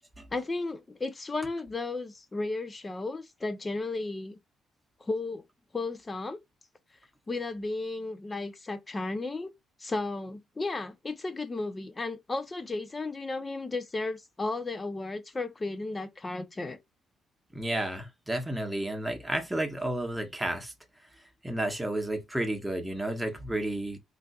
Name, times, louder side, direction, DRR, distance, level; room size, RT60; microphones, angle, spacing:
voice 1, 0.3-4.4 5.0-5.4 5.7-6.4 7.3-9.5 9.8-16.8, left 3 dB, 25° left, 0.7 m, -34 dB
voice 2, 17.5-20.7 21.4-24.0, right 1 dB, 5° right, 0.9 m, -31 dB
3.9 x 2.6 x 2.4 m
cardioid pair, 90°, 0 cm